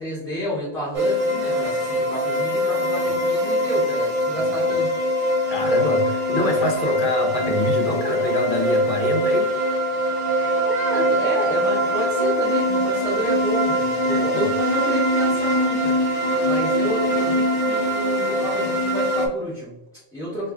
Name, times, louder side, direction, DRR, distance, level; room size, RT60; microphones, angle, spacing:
voice 1, 0.0-4.9 10.3-16.0 16.4-20.5, equal, 5° left, -10 dB, 0.7 m, -30 dB
sound 1, 0.9-19.3, equal, 50° right, 0.4 m, -22 dB
voice 2, 5.5-9.5 14.1-14.5, left 1 dB, 50° left, 1 dB, 0.8 m, -25 dB
4.5 x 2.4 x 2.4 m, 0.91 s
omnidirectional pair, 1.3 m